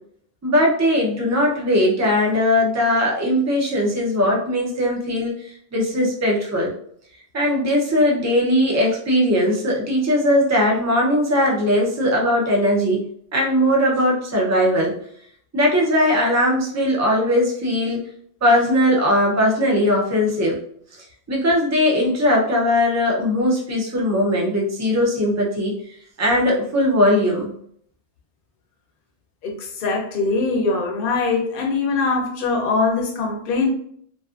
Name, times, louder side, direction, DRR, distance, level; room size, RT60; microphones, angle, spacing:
voice 1, 0.4-6.7 7.3-13.0 13.3-14.9 15.5-18.0 18.4-20.6 21.3-25.8 26.2-27.5, left 1 dB, 25° right, -2 dB, 0.3 m, -19 dB
voice 2, 29.4-33.7, left 4 dB, 55° left, 1 dB, 0.7 m, -22 dB
2.5 x 2.4 x 2.4 m, 0.64 s
omnidirectional pair, 1.2 m